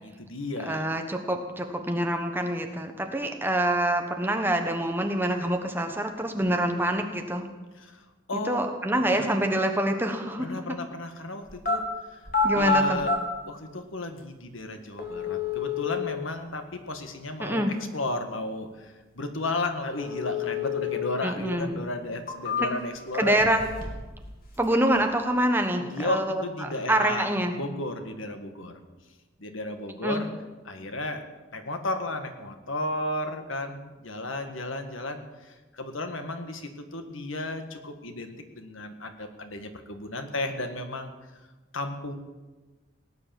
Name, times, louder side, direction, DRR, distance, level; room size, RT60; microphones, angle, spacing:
voice 1, 0.0-0.9 7.8-8.0 8.3-9.3 10.4-11.8 12.1-12.2 12.5-13.1 13.5-17.7 17.9-23.4 25.8-28.8 29.4-30.3 30.6-31.2 31.5-41.1 41.7-42.2, left 2 dB, 80° left, 6 dB, 1.7 m, -34 dB
voice 2, 0.7-7.5 8.5-10.5 12.4-13.0 17.4-17.7 21.2-21.8 22.6-22.7 23.2-23.6 24.6-27.5 30.0-30.2, right 1 dB, 10° right, 4 dB, 1.3 m, -26 dB
sound 1, 11.5-11.8 12.2-13.2 14.2-14.3 15.0-16.0 20.0-21.0 21.4-21.5 22.1-23.0 23.4-24.1 24.4-25.0, left 5 dB, 45° left, 2.8 m, -28 dB
18.0 x 9.8 x 7.7 m, 1.2 s
head